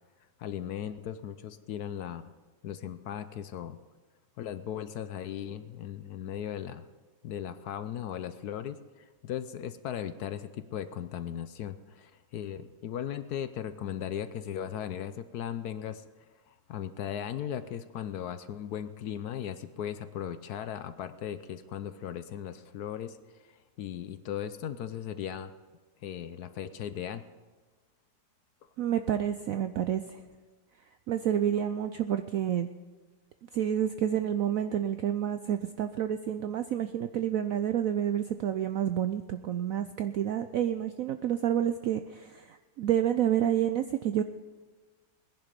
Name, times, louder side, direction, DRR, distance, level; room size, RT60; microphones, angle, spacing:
voice 1, 0.4-2.2 2.6-3.8 4.4-6.8 7.2-16.0 16.5-23.2 23.8-25.5 26.0-27.3, left 10 dB, 70° left, 12 dB, 1.0 m, -37 dB
voice 2, 28.8-30.2 31.1-32.7 33.5-44.2, right 10 dB, 75° right, 9 dB, 0.7 m, -29 dB
19.5 x 10.5 x 5.2 m, 1.3 s
omnidirectional pair, 2.0 m